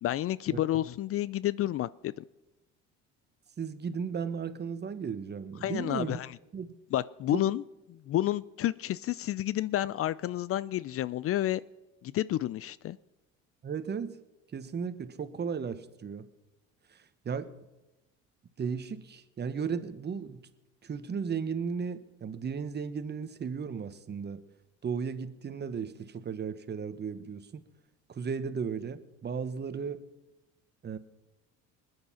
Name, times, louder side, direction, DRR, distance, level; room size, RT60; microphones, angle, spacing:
voice 1, 0.0-2.2 5.6-6.4 6.9-7.6 7.9-11.6 12.0-13.0, left 13 dB, 45° left, 20 dB, 0.4 m, -30 dB
voice 2, 3.6-6.2 6.5-6.7 7.3-7.5 13.6-14.2 14.5-16.3 16.9-17.5 18.6-20.4 20.8-24.4 24.8-27.6 28.1-30.1 30.8-31.0, right 6 dB, 30° right, 12 dB, 1.2 m, -35 dB
20.5 x 9.7 x 5.7 m, 1.0 s
supercardioid pair, 85°, 33 cm